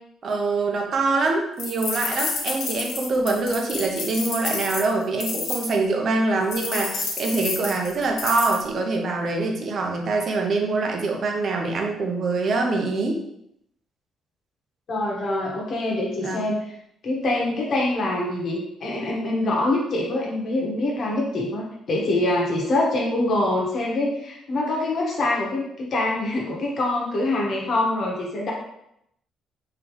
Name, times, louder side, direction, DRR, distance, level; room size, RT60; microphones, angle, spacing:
voice 1, 0.2-13.2 16.2-16.4, right 3 dB, 50° right, 2 dB, 0.7 m, -24 dB
sound 1, 1.6-5.7 6.5-8.6, left 4 dB, 75° left, 0.9 m, -29 dB
voice 2, 14.9-16.6 17.0-28.5, left 2 dB, 50° left, -3 dB, 1.2 m, -24 dB
3.9 x 3.2 x 3.0 m, 0.78 s
cardioid pair, 120°, 0 cm